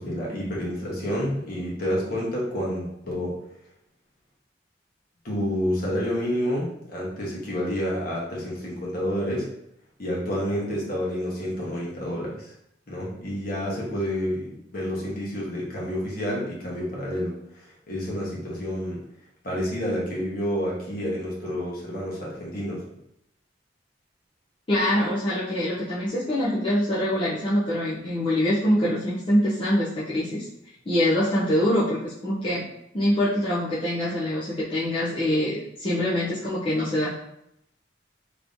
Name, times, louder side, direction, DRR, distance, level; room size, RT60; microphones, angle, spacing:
voice 1, 0.0-3.4 5.2-9.5 10.0-12.5 12.9-19.0 19.4-22.8, equal, 55° left, -4 dB, 1.2 m, -29 dB
voice 2, 24.7-30.5 30.9-32.7 32.9-37.2, left 1 dB, 30° left, -8 dB, 0.6 m, -24 dB
3.4 x 3.0 x 2.6 m, 0.77 s
head